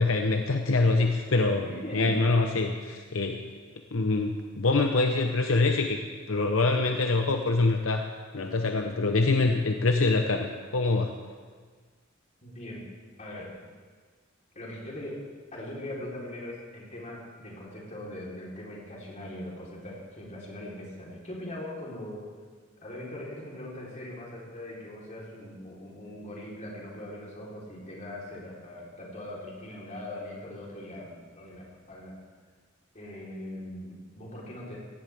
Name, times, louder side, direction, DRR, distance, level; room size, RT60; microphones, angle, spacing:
voice 1, 0.0-3.4 3.9-6.0 6.3-8.0 8.3-11.1, left 3 dB, 75° left, 4 dB, 0.8 m, -25 dB
voice 2, 1.3-2.3 12.4-12.8 13.2-13.5 14.5-22.3 22.8-32.2 32.9-34.8, left 1 dB, 35° left, -4 dB, 3.8 m, -41 dB
17.5 x 16.0 x 3.5 m, 1.5 s
head